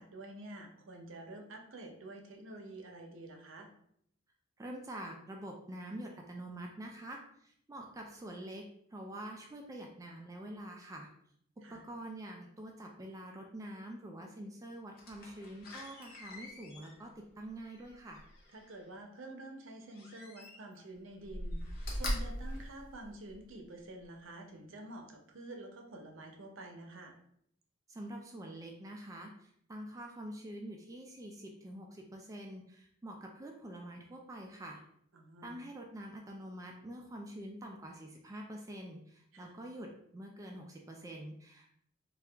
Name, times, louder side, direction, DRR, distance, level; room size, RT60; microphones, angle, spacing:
voice 1, 0.0-3.7 11.6-11.8 18.5-21.6 21.9-27.1 35.1-35.6 39.3-39.5, right 2 dB, 75° right, 3 dB, 0.6 m, -48 dB
voice 2, 4.6-8.6 8.9-11.1 11.7-18.2 27.9-34.8 35.4-41.7, right 1 dB, 15° right, 1 dB, 0.3 m, -46 dB
Slam, 14.9-18.8 19.9-20.8 21.2-23.5 24.0-24.1, equal, 50° left, 0.8 m, -41 dB
2.8 x 2.3 x 3.3 m, 0.68 s
head